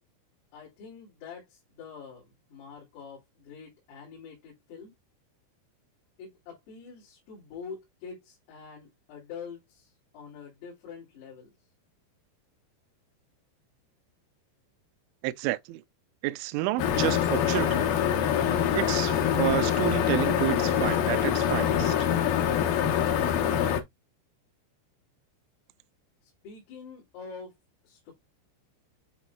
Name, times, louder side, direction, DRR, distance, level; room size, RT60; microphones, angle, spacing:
voice 1, 0.5-4.9 6.2-11.5 26.2-27.5 27.8-28.1, left 6 dB, 90° left, 5.9 m, -45 dB
voice 2, 15.2-15.8 16.2-17.8 18.7-21.9, right 17 dB, 85° right, 2.8 m, -30 dB
sound 1, 16.8-23.8, left 9 dB, 70° left, 2.2 m, -25 dB
11.0 x 4.3 x 2.3 m
omnidirectional pair, 5.7 m